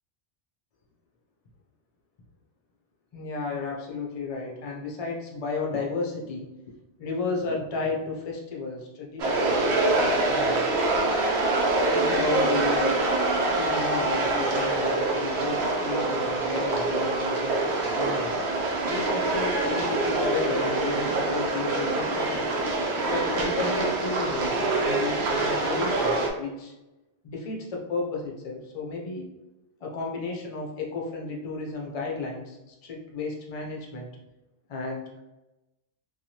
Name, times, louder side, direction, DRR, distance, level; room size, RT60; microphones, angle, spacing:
voice 1, 3.1-10.7 11.9-12.8 13.6-17.6 18.0-18.4 18.9-22.5 23.1-26.7 27.2-29.3 29.8-34.1 34.7-35.2, left 3 dB, 40° left, -1 dB, 0.5 m, -33 dB
sound 1, 9.2-26.3, right 2 dB, 70° right, 0.8 m, -25 dB
3.0 x 2.3 x 2.8 m, 0.98 s
omnidirectional pair, 1.2 m